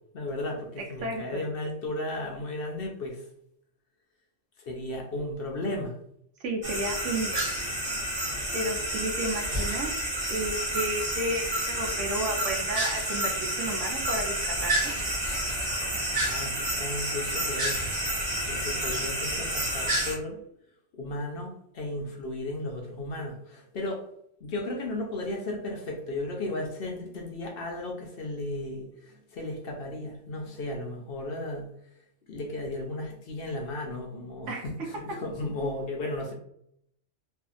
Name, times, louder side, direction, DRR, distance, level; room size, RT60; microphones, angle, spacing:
voice 1, 0.1-3.2 4.6-6.0 16.2-17.8 18.5-20.4 20.9-24.0 24.4-31.7 32.3-36.3, left 2 dB, 60° left, 0 dB, 0.8 m, -35 dB
voice 2, 0.8-1.4 6.4-7.4 8.5-9.9 10.3-13.3 13.6-14.9 34.5-34.9, right 1 dB, 85° right, 1 dB, 1.0 m, -32 dB
sound 1, 6.6-20.1, right 1 dB, 55° right, 1.1 m, -29 dB
2.7 x 2.4 x 2.4 m, 0.72 s
omnidirectional pair, 1.2 m